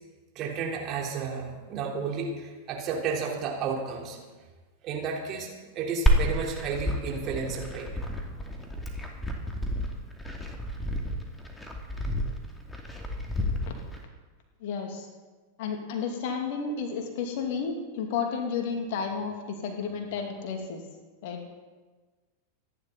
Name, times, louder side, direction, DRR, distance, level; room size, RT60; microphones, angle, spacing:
voice 1, 0.4-4.2 4.8-5.5 5.7-7.9, right 5 dB, 35° right, -1 dB, 3.9 m, -32 dB
Glass, 6.1-14.0, equal, 10° left, 2.5 m, -30 dB
voice 2, 14.6-15.1 15.6-20.8 21.2-21.4, left 5 dB, 50° left, 3 dB, 2.6 m, -32 dB
25.5 x 11.0 x 4.1 m, 1.3 s
figure-of-eight pair, 90°, 0 cm